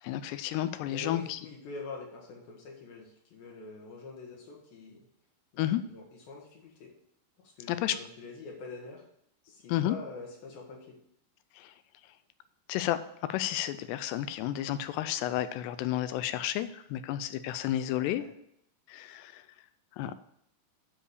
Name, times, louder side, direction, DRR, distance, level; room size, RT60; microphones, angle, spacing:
voice 1, 0.0-1.4 5.6-5.8 7.7-8.0 9.7-10.0 11.6-11.7 12.7-13.0 13.3-18.2 18.9-19.4 20.0-20.2, left 13 dB, 90° left, 12 dB, 2.8 m, -31 dB
voice 2, 0.9-5.0 5.5-6.9 7.4-9.0 9.4-11.0 17.9-18.3, left 3 dB, 65° left, -1 dB, 3.0 m, -45 dB
9.9 x 5.0 x 6.6 m, 0.72 s
omnidirectional pair, 4.8 m